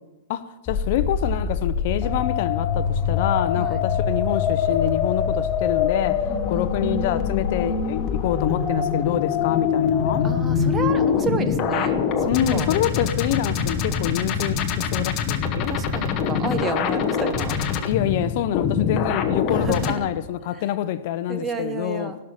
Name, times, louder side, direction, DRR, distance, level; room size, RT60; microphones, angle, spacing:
voice 1, 0.3-10.3 12.2-15.7 17.8-22.1, left 11 dB, 45° left, 0.6 m, -26 dB
sound 1, 0.7-19.9, left 6 dB, 25° left, 1.0 m, -24 dB
voice 2, 6.3-6.9 10.2-12.7 15.7-17.6 19.5-19.9 20.5-20.6 21.3-22.2, right 5 dB, 15° right, 0.8 m, -31 dB
17.0 x 6.5 x 8.9 m
hypercardioid pair, 160°, 0 cm